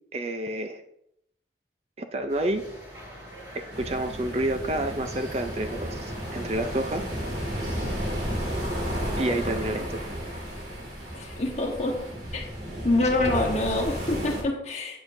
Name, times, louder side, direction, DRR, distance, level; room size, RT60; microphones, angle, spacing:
voice 1, 0.1-0.8 2.0-2.7 3.5-7.0 9.2-10.1, right 1 dB, 35° right, 7 dB, 0.5 m, -29 dB
sound 1, 2.3-9.6, equal, 20° right, 1.9 m, -44 dB
sound 2, 3.7-14.4, equal, 75° right, 2.7 m, -33 dB
voice 2, 11.1-12.0 12.3-12.5 12.8-15.0, left 2 dB, 40° left, 1 dB, 1.2 m, -26 dB
8.8 x 7.3 x 2.6 m, 0.76 s
head